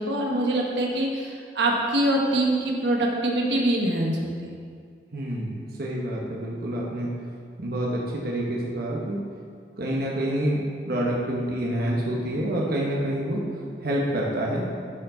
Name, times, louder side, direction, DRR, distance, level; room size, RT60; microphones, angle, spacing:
voice 1, 0.0-4.6, right 1 dB, 80° right, -1 dB, 1.2 m, -24 dB
voice 2, 5.1-7.1 7.6-9.2 9.8-13.4 13.8-14.7, right 1 dB, 60° right, -3 dB, 1.1 m, -27 dB
11.0 x 4.7 x 3.9 m, 2.1 s
head